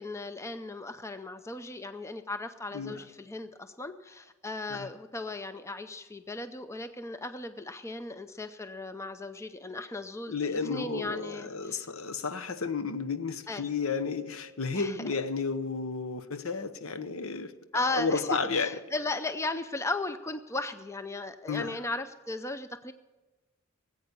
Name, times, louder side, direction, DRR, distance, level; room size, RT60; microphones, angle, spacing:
voice 1, 0.0-11.9 13.5-13.7 14.7-15.1 17.7-22.9, left 2 dB, 15° left, 0.5 m, -36 dB
voice 2, 10.3-17.5 17.9-18.7 21.5-21.8, left 4 dB, 70° left, 0.9 m, -32 dB
18.5 x 8.5 x 6.8 m
head